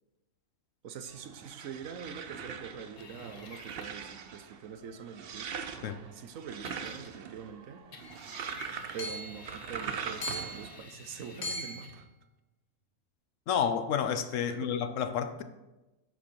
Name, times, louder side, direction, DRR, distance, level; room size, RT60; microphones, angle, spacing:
voice 1, 0.8-5.5 6.1-7.8 8.9-12.1 14.5-14.7, right 6 dB, 70° right, 10 dB, 1.1 m, -44 dB
sound 1, 1.1-10.8, right 6 dB, 55° right, 0.7 m, -42 dB
sound 2, 3.0-4.1 6.7-7.4 7.9-12.1, left 4 dB, 85° left, 1.7 m, -51 dB
Hammer / Chink clink, 8.0-8.2 9.0-9.4 10.2-10.7 11.4-11.9, equal, 50° left, 1.7 m, -37 dB
voice 2, 13.5-15.4, left 7 dB, 65° left, 10 dB, 1.0 m, -30 dB
10.5 x 7.3 x 4.5 m, 1.0 s
omnidirectional pair, 1.5 m